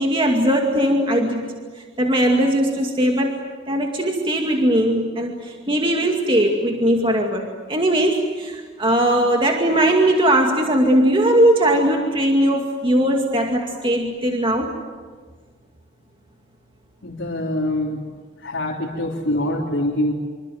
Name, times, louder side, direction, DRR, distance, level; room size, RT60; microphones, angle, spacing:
voice 1, 0.0-1.5 1.7-3.4 3.7-14.7, right 1 dB, 25° right, 1 dB, 2.2 m, -19 dB
voice 2, 17.0-18.0 18.4-20.1, left 1 dB, 80° left, -4 dB, 3.5 m, -24 dB
26.0 x 25.5 x 7.8 m, 1.5 s
head